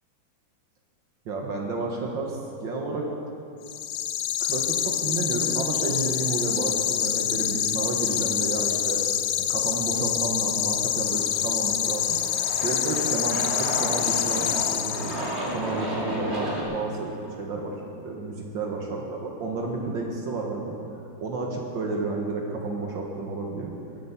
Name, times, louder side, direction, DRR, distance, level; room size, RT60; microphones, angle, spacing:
voice 1, 1.3-3.1 4.4-9.0 9.5-12.2 12.6-17.7 18.0-20.8 21.2-23.7, right 3 dB, 70° right, 0 dB, 2.0 m, -31 dB
sound 1, 3.6-15.5, left 10 dB, 75° left, 1.4 m, -26 dB
Aircraft, 10.9-16.6, equal, 35° right, 2.8 m, -33 dB
21.5 x 8.1 x 5.8 m, 2.6 s
omnidirectional pair, 2.1 m